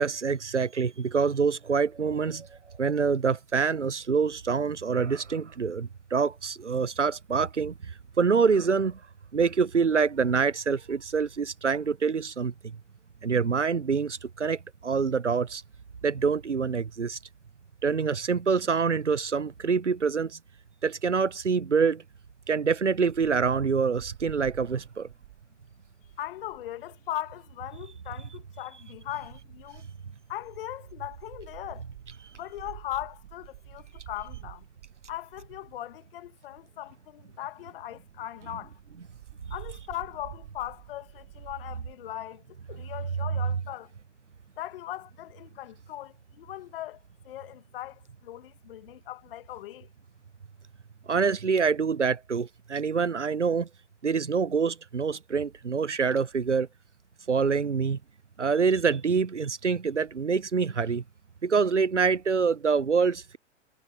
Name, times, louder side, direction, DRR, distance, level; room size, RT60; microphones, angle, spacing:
voice 1, 0.0-2.5 2.8-9.0 9.3-12.8 13.2-15.6 16.0-17.2 17.8-20.4 20.8-22.0 22.5-25.1 51.1-53.7 54.0-56.7 57.3-58.0 58.4-61.0 61.4-63.4, right 5 dB, 90° right, 0.7 m, -26 dB
Wind, 23.9-26.7 27.8-28.2 29.0-35.9 36.5-36.6 36.9-37.0 37.3-37.4 37.7-37.8 38.0-38.2 38.6-41.9, right 17 dB, 50° right, 4.7 m, -49 dB
voice 2, 26.2-29.9 30.3-31.8 32.3-34.7 35.1-38.7 39.5-42.4 42.7-43.9 44.6-49.9, left 14 dB, 50° left, 1.9 m, -39 dB
figure-of-eight pair, 100°, 35 cm